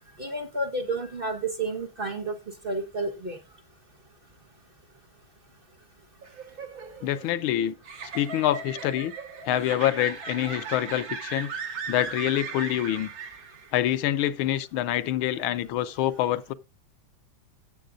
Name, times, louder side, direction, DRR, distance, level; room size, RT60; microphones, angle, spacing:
voice 1, 0.2-2.3 2.6-3.4, right 2 dB, 35° right, 1.2 m, -30 dB
sound 1, 6.2-13.8, right 5 dB, 70° right, 2.4 m, -38 dB
voice 2, 7.0-7.8 8.1-9.1 9.5-11.5 11.9-13.1 13.7-16.5, left 12 dB, 90° left, 1.6 m, -26 dB
18.0 x 7.5 x 2.5 m
omnidirectional pair, 2.2 m